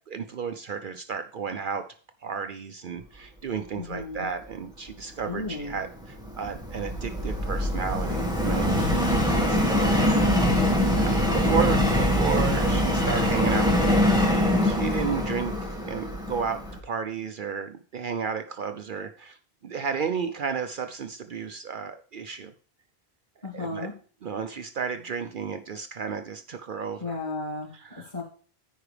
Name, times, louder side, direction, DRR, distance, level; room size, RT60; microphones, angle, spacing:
voice 1, 0.0-1.9 2.2-10.0 10.8-14.3 14.6-22.5 23.5-23.9 24.2-27.1 27.7-28.2, right 6 dB, 60° right, 8 dB, 0.7 m, -33 dB
voice 2, 3.7-4.3 5.3-5.8 9.5-10.8 11.4-11.9 23.4-23.9 27.0-27.7 28.1-28.2, left 3 dB, 45° left, -5 dB, 2.7 m, -34 dB
Subway metro underground, 5.5-16.8, left 1 dB, 5° right, 1.7 m, -23 dB
14.5 x 4.8 x 3.3 m, 0.42 s
omnidirectional pair, 1.1 m